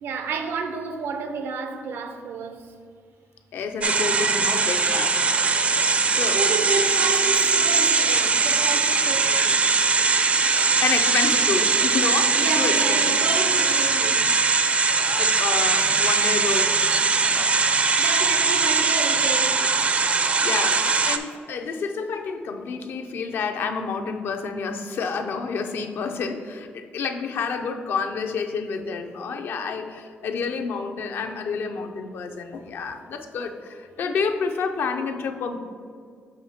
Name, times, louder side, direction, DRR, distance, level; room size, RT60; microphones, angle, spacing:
voice 1, 0.0-2.7 6.3-9.7 12.3-14.3 17.7-19.7, right 4 dB, 80° right, 0.6 m, -31 dB
voice 2, 3.5-5.4 6.0-6.4 10.8-13.2 14.8-16.8 17.2-17.5 20.0-35.6, left 5 dB, 70° left, 0.6 m, -29 dB
sound 1, 3.8-21.2, right 4 dB, 35° right, 0.4 m, -21 dB
7.1 x 2.8 x 5.6 m
cardioid pair, 110°, 4 cm